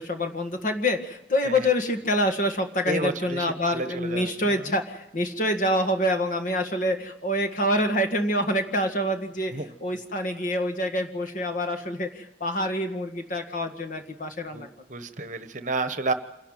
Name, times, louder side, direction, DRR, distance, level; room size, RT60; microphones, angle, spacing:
voice 1, 0.0-9.5 9.8-14.7, left 1 dB, 45° left, 5 dB, 1.8 m, -26 dB
voice 2, 2.8-4.6 9.5-9.7 14.5-16.1, right 2 dB, 40° right, 10 dB, 1.1 m, -31 dB
27.0 x 11.5 x 9.2 m, 0.86 s
head